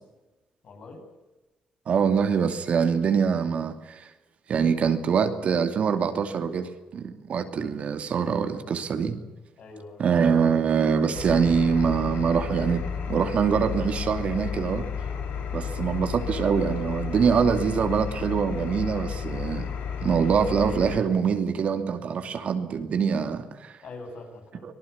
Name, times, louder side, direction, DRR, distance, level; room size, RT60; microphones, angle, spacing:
voice 1, 0.6-1.1 7.5-7.9 9.6-10.0 23.8-24.7, left 3 dB, 55° left, 4 dB, 7.8 m, -43 dB
voice 2, 1.9-4.1 4.5-9.2 10.0-14.9 15.5-19.7 20.0-23.8 24.6-24.7, right 6 dB, 55° right, 7 dB, 2.6 m, -24 dB
Engine, 11.1-21.0, left 7 dB, 80° left, 4.9 m, -32 dB
25.0 x 19.0 x 8.6 m, 1.1 s
cardioid pair, 110°, 3 cm